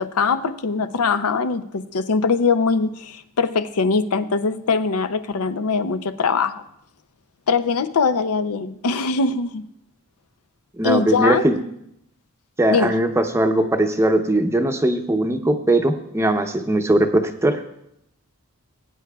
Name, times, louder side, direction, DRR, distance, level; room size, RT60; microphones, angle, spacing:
voice 1, 0.0-6.6 7.5-9.6 10.8-11.5 12.7-12.9, left 4 dB, 70° left, 10 dB, 0.5 m, -22 dB
voice 2, 10.8-11.6 12.6-17.6, right 1 dB, 10° right, 6 dB, 0.7 m, -20 dB
20.5 x 9.1 x 2.3 m, 0.77 s
head